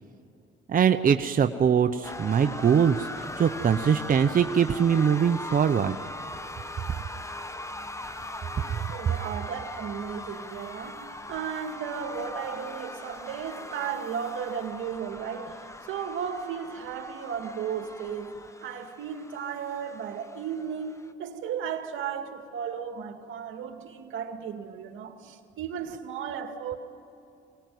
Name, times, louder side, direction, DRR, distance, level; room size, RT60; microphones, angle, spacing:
voice 1, 0.7-6.0 8.7-8.8, right 7 dB, 45° right, 0.9 m, -22 dB
sound 1, 2.0-21.1, left 2 dB, 15° left, 1.2 m, -40 dB
voice 2, 8.9-18.3 18.6-26.7, right 7 dB, 80° right, 2.2 m, -35 dB
24.5 x 19.5 x 9.4 m
cardioid pair, 90°, 20 cm